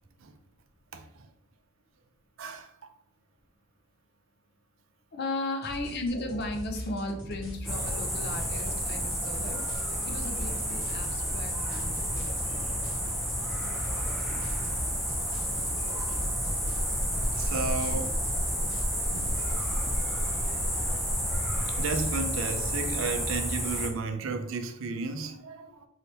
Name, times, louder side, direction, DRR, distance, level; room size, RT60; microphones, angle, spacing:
voice 1, 2.4-2.7 17.4-18.2 19.1-19.6 21.8-25.9, right 4 dB, 65° right, 0.4 m, -33 dB
voice 2, 5.1-9.7 10.1-12.2 20.8-21.0, left 2 dB, 50° left, 0.5 m, -36 dB
sound 1, 5.6-20.0, equal, 65° left, 1.3 m, -41 dB
sound 2, 7.7-23.9, equal, ahead, 0.5 m, -30 dB
3.3 x 2.7 x 2.7 m
head